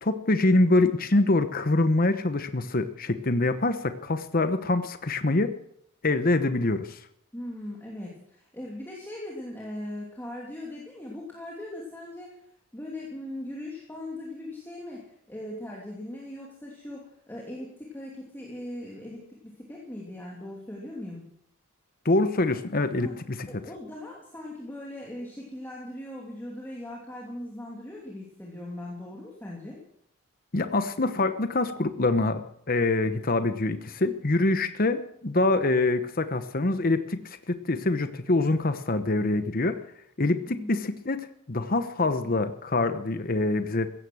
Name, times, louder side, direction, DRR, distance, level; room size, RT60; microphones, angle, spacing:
voice 1, 0.0-5.5 6.0-7.0 22.0-23.5 30.5-39.8 40.2-43.9, left 2 dB, 40° left, 10 dB, 1.0 m, -25 dB
voice 2, 7.3-12.3 12.7-21.2 22.9-23.2 23.5-29.8 40.5-40.8, left 1 dB, 10° left, -4 dB, 2.9 m, -39 dB
16.0 x 14.0 x 6.3 m, 0.70 s
head